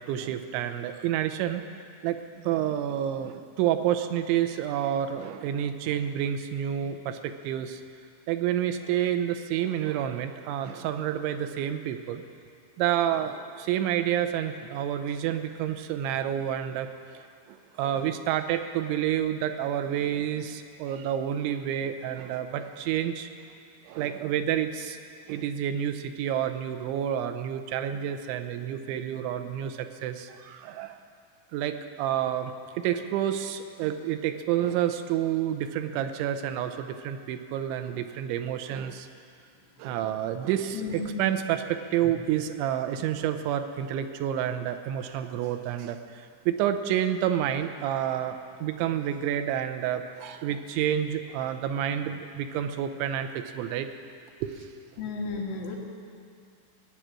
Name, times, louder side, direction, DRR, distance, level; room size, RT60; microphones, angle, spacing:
voice 1, 0.1-1.6 2.0-7.8 8.3-12.2 12.8-23.3 23.9-25.0 25.3-31.0 31.5-39.1 39.8-53.9 54.4-54.7, right 10 dB, 90° right, 8 dB, 3.0 m, -29 dB
voice 2, 40.7-41.2 55.0-55.8, left 4 dB, 70° left, -2 dB, 4.1 m, -33 dB
18.0 x 9.6 x 7.5 m, 2.3 s
omnidirectional pair, 5.3 m